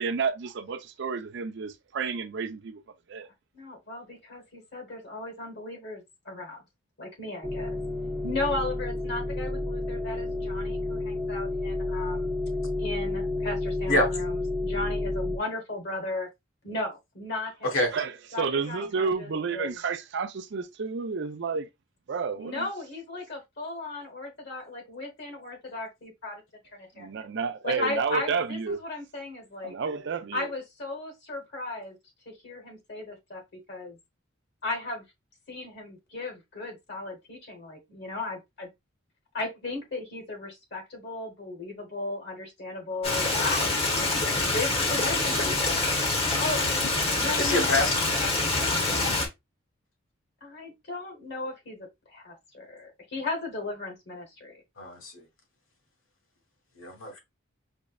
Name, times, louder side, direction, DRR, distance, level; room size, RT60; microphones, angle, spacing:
voice 1, 0.0-2.8 3.1-3.3 17.9-18.1 18.4-21.7 22.1-22.6 27.0-28.8 29.6-30.5, right 5 dB, 55° right, 0.4 m, -30 dB
voice 2, 3.5-6.6 7.0-7.8 8.2-12.4 12.8-16.3 16.6-17.7 18.3-19.8 22.4-26.4 26.7-27.1 27.6-29.7 30.3-32.0 32.3-34.0 34.6-35.0 35.5-38.7 39.3-46.7 47.1-47.9 48.5-49.1 50.4-54.5, left 2 dB, 55° left, 1.0 m, -36 dB
sound 1, 7.4-15.4, left 2 dB, 5° right, 0.6 m, -30 dB
Stream, 43.0-49.3, left 2 dB, 30° left, 0.8 m, -26 dB
voice 3, 47.4-47.9 54.8-55.2 56.8-57.2, left 1 dB, 80° left, 1.4 m, -26 dB
5.1 x 2.1 x 2.2 m
head